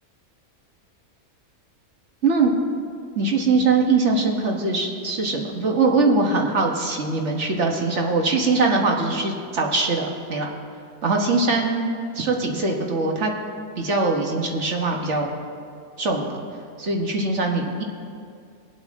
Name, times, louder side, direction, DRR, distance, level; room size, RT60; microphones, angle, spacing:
voice 1, 3.1-10.5 11.0-11.9 12.1-13.3 13.8-15.3 16.0-16.3 16.8-17.8, right 3 dB, 55° right, 1 dB, 1.6 m, -22 dB
20.0 x 8.1 x 3.6 m, 2.3 s
omnidirectional pair, 1.5 m